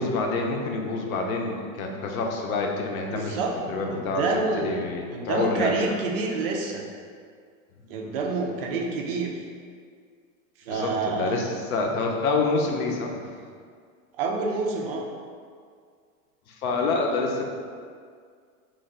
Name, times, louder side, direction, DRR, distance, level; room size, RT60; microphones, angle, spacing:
voice 1, 0.0-3.4 3.7-5.9 10.7-13.3 16.5-17.5, left 3 dB, 85° left, 1 dB, 0.7 m, -27 dB
voice 2, 3.1-3.5 3.9-6.8 7.9-9.3 10.6-11.4 14.2-15.0, right 3 dB, 45° right, -1 dB, 0.4 m, -28 dB
3.2 x 2.3 x 3.7 m, 2.1 s
supercardioid pair, 160°, 42 cm